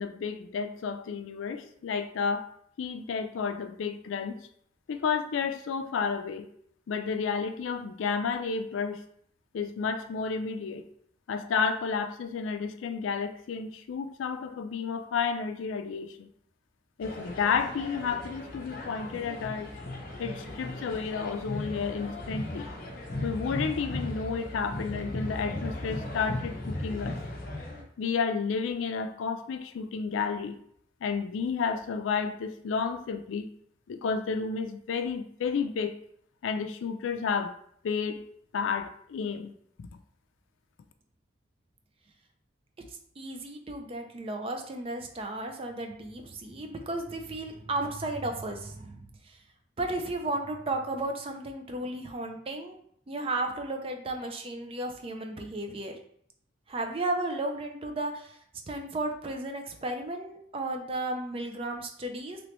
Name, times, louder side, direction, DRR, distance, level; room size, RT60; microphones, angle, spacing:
voice 1, 0.0-2.5 2.8-4.4 4.9-6.5 6.9-9.0 9.5-10.8 11.3-16.3 17.0-19.7 20.2-22.7 23.2-27.2 28.0-30.6 31.0-33.5 33.9-36.0 36.4-37.5 37.8-38.2 38.5-39.5 39.8-39.9, left 5 dB, 90° left, 8 dB, 0.4 m, -31 dB
sound 1, 17.0-27.8, left 1 dB, 50° left, 0.7 m, -37 dB
voice 2, 43.2-49.4 49.8-52.8 53.1-55.9 56.7-58.4 58.7-62.4, right 2 dB, 30° right, 5 dB, 0.4 m, -34 dB
3.1 x 3.0 x 3.0 m, 0.65 s
head